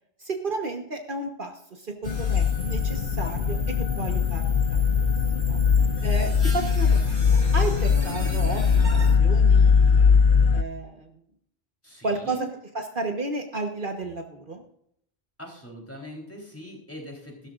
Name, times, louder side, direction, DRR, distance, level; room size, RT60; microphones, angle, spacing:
voice 1, 0.2-4.4 4.7-4.8 5.4-5.6 6.0-8.7 8.9-10.2 10.5-11.1 12.0-12.4 12.7-14.6, right 3 dB, 55° right, 4 dB, 1.4 m, -32 dB
sound 1, 2.0-10.6, left 6 dB, 60° left, 0.7 m, -21 dB
sound 2, 2.0-9.1, right 1 dB, 75° right, 3.9 m, -36 dB
voice 2, 5.8-6.3 8.0-8.3 11.8-12.5 15.4-17.5, left 1 dB, 15° left, -1 dB, 3.8 m, -42 dB
16.0 x 13.0 x 2.5 m, 0.69 s
omnidirectional pair, 1.0 m